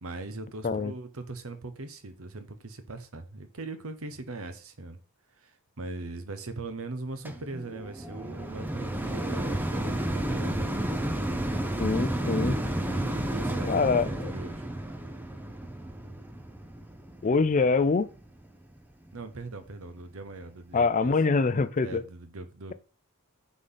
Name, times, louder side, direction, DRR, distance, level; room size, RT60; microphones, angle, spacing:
voice 1, 0.0-5.0 5.4-10.7 12.9-14.7 19.1-21.1 21.8-22.7, right 3 dB, 75° right, 1.0 m, -40 dB
sound 1, 7.2-18.5 19.1-19.2, right 1 dB, 10° right, 0.6 m, -32 dB
voice 2, 11.8-12.6 13.7-14.3 17.2-18.1 20.7-22.0, left 4 dB, 35° left, 0.4 m, -24 dB
9.7 x 3.9 x 3.9 m
head